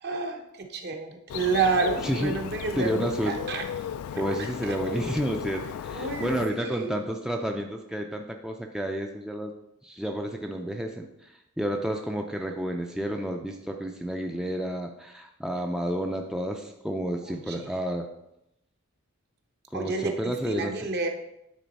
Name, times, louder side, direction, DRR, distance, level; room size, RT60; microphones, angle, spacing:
voice 1, 0.0-0.4 0.7-3.6 4.6-4.7 5.9-6.9 17.2-17.6 19.7-21.1, right 4 dB, 50° right, 4 dB, 0.9 m, -29 dB
Bird, 1.3-6.5, left 8 dB, 85° left, 0.3 m, -35 dB
voice 2, 2.0-2.4 2.7-3.4 4.2-9.5 9.8-18.1 19.7-20.7, right 1 dB, 5° right, 2 dB, 0.4 m, -30 dB
9.2 x 3.8 x 4.1 m, 0.84 s
head